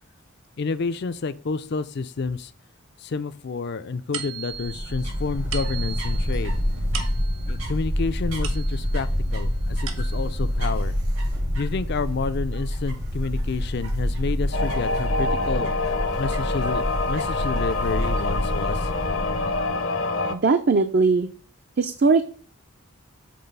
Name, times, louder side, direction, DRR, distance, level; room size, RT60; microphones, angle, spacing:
voice 1, 0.6-2.5 3.0-6.6 7.5-10.9 11.5-15.7 16.2-18.9, left 4 dB, 50° left, 14 dB, 0.4 m, -29 dB
sound 1, 4.1-9.1 9.6-10.5, right 8 dB, 70° right, 1.0 m, -38 dB
sound 2, 4.5-19.7, equal, 90° right, 4.3 m, -27 dB
sound 3, 14.5-20.3, left 3 dB, 65° left, 0.8 m, -26 dB
voice 2, 20.3-21.3 21.8-22.2, right 4 dB, 50° right, 7 dB, 0.5 m, -19 dB
7.7 x 4.0 x 5.3 m, 0.44 s
head